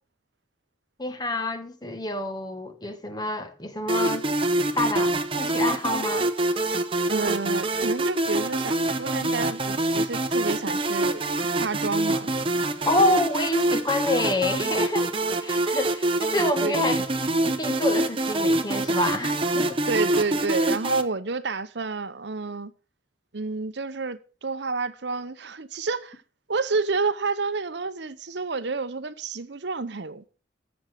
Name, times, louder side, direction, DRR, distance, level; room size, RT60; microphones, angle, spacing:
voice 1, 1.0-4.3 4.7-6.3 12.8-15.1 15.4-17.0 17.4-19.8, left 2 dB, 20° left, 1.4 m, -27 dB
sound 1, 3.9-21.0, right 2 dB, 30° right, 0.9 m, -25 dB
voice 2, 7.1-12.3 16.6-16.8 19.9-22.7 23.3-26.2 26.5-30.3, right 4 dB, 60° right, 0.8 m, -29 dB
14.5 x 6.4 x 6.4 m
head